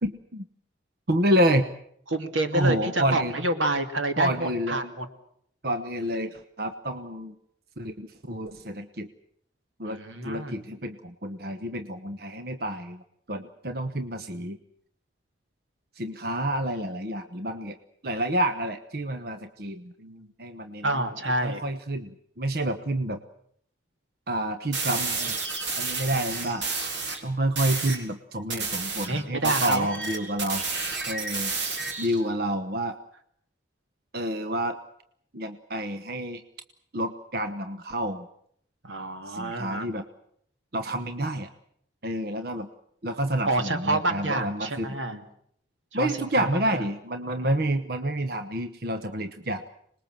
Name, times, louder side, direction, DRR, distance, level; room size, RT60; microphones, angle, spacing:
voice 1, 0.0-0.4 1.1-1.7 2.5-3.3 4.2-4.8 5.6-7.3 7.8-9.1 9.8-13.0 13.3-14.6 16.0-17.8 18.0-19.9 20.4-21.0 21.4-23.2 24.3-25.4 25.7-26.8 27.2-30.6 31.1-31.5 32.0-33.0 34.1-34.8 35.3-36.4 36.9-38.3 39.3-40.0 40.7-41.5 42.0-42.7 43.0-45.0 45.9-49.6, right 1 dB, 55° right, 9 dB, 1.1 m, -29 dB
voice 2, 2.1-5.1 9.8-10.6 20.0-20.3 20.8-21.6 26.1-26.2 29.1-29.9 38.8-39.9 43.5-45.2 45.9-46.8 47.4-47.6, right 2 dB, 90° right, 7 dB, 2.6 m, -28 dB
sound 1, 24.7-27.2 27.6-28.0 28.5-32.2, right 4 dB, 70° right, 4.0 m, -31 dB
25.5 x 20.5 x 7.6 m, 0.68 s
head